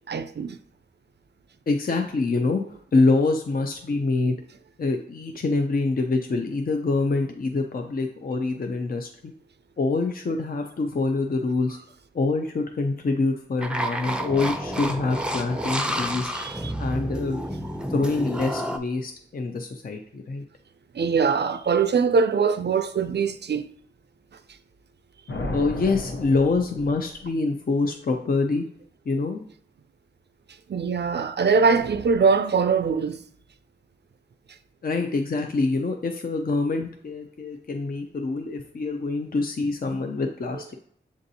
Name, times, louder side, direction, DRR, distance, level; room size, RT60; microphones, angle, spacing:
voice 1, 0.1-0.6 16.3-16.7 20.9-23.7 30.7-33.2, right 5 dB, 60° right, 0.4 m, -22 dB
voice 2, 1.7-2.6 2.9-4.4 4.8-9.3 9.8-11.8 12.1-16.3 16.8-17.4 17.9-20.4 25.5-28.6 29.1-29.4 34.8-40.7, left 3 dB, 50° left, 0.5 m, -25 dB
sound 1, 13.6-18.8, equal, 5° right, 0.5 m, -30 dB
sound 2, 25.3-27.3, left 2 dB, 75° left, 0.7 m, -33 dB
7.1 x 2.6 x 2.7 m
cardioid pair, 45°, 20 cm